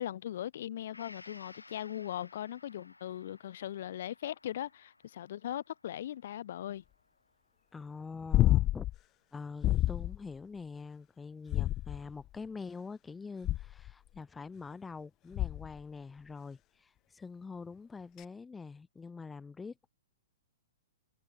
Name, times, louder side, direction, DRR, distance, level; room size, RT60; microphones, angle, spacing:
voice 1, 0.0-6.8, left 11 dB, 55° left, 1.7 m, -39 dB
Gong, 0.9-8.6 9.0-9.1, left 2 dB, 80° left, 4.4 m, -58 dB
voice 2, 7.7-8.9 9.3-19.9, left 4 dB, 10° left, 1.5 m, -45 dB
sound 1, 8.3-9.0 9.6-10.2 11.5-12.2 13.4-13.9 15.4-15.8 18.2-18.3, left 14 dB, 25° left, 0.4 m, -28 dB
figure-of-eight pair, 110°, 0 cm